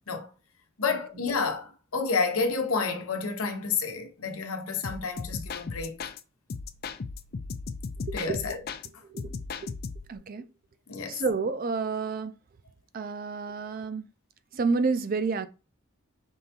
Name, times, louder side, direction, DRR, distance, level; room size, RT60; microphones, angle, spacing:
voice 1, 0.8-6.0 8.1-8.6 10.9-11.2, left 4 dB, 90° left, 0.9 m, -30 dB
sound 1, 4.8-6.2 6.5-8.9 9.2-10.2, left 4 dB, 45° left, 0.4 m, -37 dB
voice 2, 8.1-8.4 9.1-9.3 10.1-10.4 11.1-12.3 12.9-14.1 14.5-15.5, right 4 dB, 40° right, 0.4 m, -29 dB
5.4 x 3.4 x 2.8 m
head